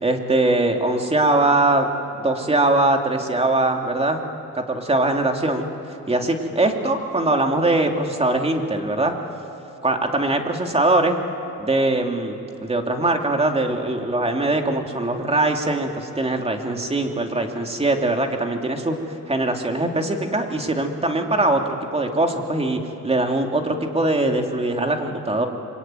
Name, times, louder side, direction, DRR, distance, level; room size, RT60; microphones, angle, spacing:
voice 1, 0.0-1.9 2.2-4.2 4.5-5.6 6.1-9.1 9.8-11.2 11.6-12.3 12.6-19.0 19.3-21.6 21.9-25.5, right 2 dB, 20° right, 3 dB, 2.8 m, -21 dB
27.0 x 23.5 x 9.2 m, 3.0 s
cardioid pair, 90°, 30 cm